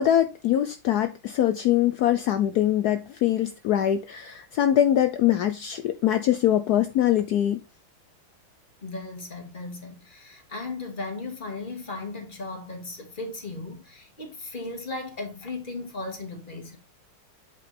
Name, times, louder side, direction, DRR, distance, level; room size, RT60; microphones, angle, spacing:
voice 1, 0.0-7.6, left 11 dB, 80° left, 0.8 m, -23 dB
voice 2, 8.8-16.8, left 2 dB, 25° left, 2.1 m, -36 dB
8.3 x 5.1 x 4.3 m
omnidirectional pair, 2.3 m